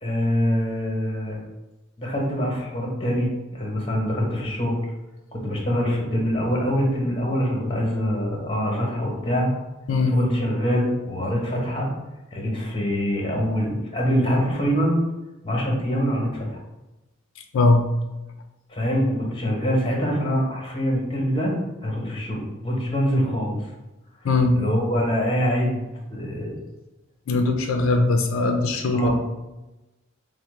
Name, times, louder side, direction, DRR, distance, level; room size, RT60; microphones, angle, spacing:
voice 1, 0.0-1.4 2.0-4.8 5.3-9.5 10.1-11.9 12.3-15.0 15.4-16.6 18.7-21.5 21.8-23.6 24.5-26.6 28.9-29.1, equal, 25° left, -1 dB, 0.9 m, -24 dB
voice 2, 17.5-17.8 24.2-24.6 27.3-29.1, left 2 dB, 90° left, 4 dB, 0.4 m, -20 dB
4.2 x 2.1 x 3.1 m, 1.0 s
head